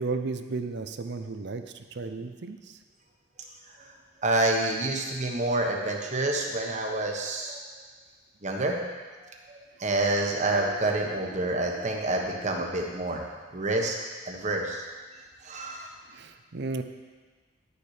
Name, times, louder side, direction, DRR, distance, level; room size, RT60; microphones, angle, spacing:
voice 1, 0.0-2.8 16.1-16.8, right 3 dB, 60° right, 8 dB, 0.6 m, -34 dB
voice 2, 4.2-7.6 8.4-8.8 9.2-13.2 13.5-13.9 14.2-14.8 15.4-15.9, right 2 dB, 35° right, 1 dB, 1.2 m, -28 dB
10.5 x 7.0 x 5.0 m, 1.4 s
head